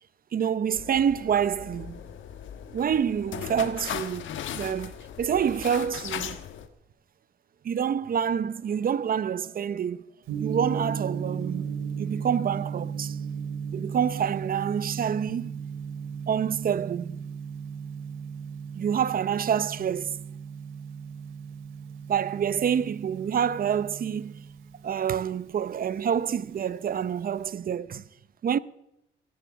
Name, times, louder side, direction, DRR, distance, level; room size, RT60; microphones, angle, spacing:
voice 1, 0.3-2.0 2.7-6.4 7.6-10.0 10.4-11.7 12.0-13.2 13.7-15.5 16.3-17.2 18.7-20.2 22.1-24.4 24.8-28.1 28.4-28.6, right 8 dB, 45° right, 0.7 m, -27 dB
sound 1, 0.7-6.7, left 9 dB, 75° left, 1.3 m, -38 dB
Gong, 10.3-27.5, right 6 dB, 90° right, 2.3 m, -36 dB
18.5 x 10.5 x 7.1 m
cardioid pair, 90°, 20 cm